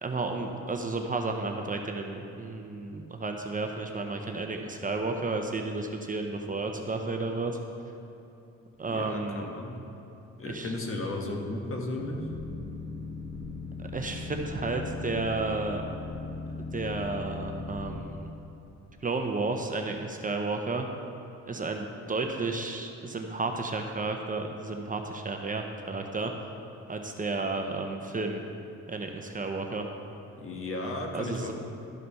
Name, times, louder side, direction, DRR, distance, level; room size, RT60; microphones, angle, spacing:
voice 1, 0.0-7.6 8.8-9.5 10.5-10.7 13.9-15.8 16.7-18.3 19.0-20.9 21.5-26.3 26.9-28.4 28.9-29.8 31.1-31.5, right 3 dB, 25° right, 3 dB, 0.8 m, -32 dB
voice 2, 8.9-9.7 10.4-12.2 30.4-31.5, left 2 dB, 45° left, 1 dB, 1.5 m, -34 dB
Boat Water vehicle, 12.0-18.0, left 3 dB, 25° left, 1.7 m, -38 dB
12.5 x 5.0 x 5.6 m, 2.9 s
cardioid pair, 90°, 30 cm